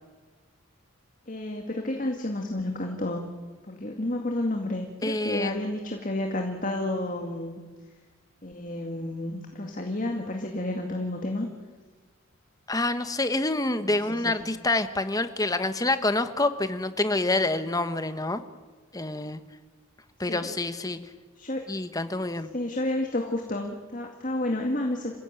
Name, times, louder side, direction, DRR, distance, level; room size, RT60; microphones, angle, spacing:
voice 1, 1.3-3.3 3.6-7.6 8.4-11.5 13.8-14.4 20.3-20.5 21.4-21.6 22.5-25.2, left 1 dB, 40° left, 3 dB, 2.1 m, -31 dB
voice 2, 5.0-5.6 12.7-18.4 18.9-19.4 20.2-21.0 21.7-22.5, left 2 dB, 15° left, 11 dB, 1.1 m, -27 dB
27.5 x 16.0 x 9.1 m, 1.4 s
head